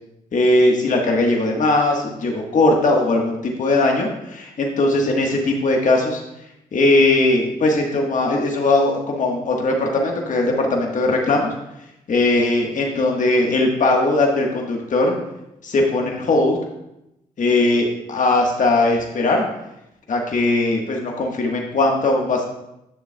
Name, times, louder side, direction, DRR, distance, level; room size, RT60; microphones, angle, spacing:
voice 1, 0.3-6.2 6.7-11.5 12.1-15.1 15.6-16.6 17.4-19.4 20.1-22.4, left 2 dB, 60° left, 0 dB, 1.3 m, -19 dB
9.9 x 6.9 x 2.2 m, 0.87 s
supercardioid pair, 50°, 15 cm